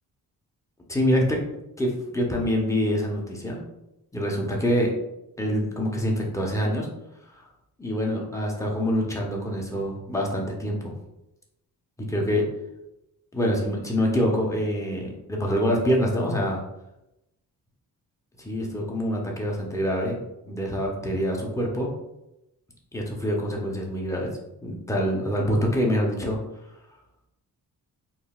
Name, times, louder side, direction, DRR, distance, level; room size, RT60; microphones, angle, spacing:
voice 1, 0.9-1.4 1.8-3.6 4.1-4.9 5.4-6.9 7.8-10.9 12.0-12.5 13.3-16.6 18.4-20.2 20.4-21.9 22.9-24.3 24.6-26.4, equal, 10° left, -1 dB, 0.7 m, -25 dB
3.9 x 2.2 x 2.3 m, 0.90 s
cardioid pair, 65°, 38 cm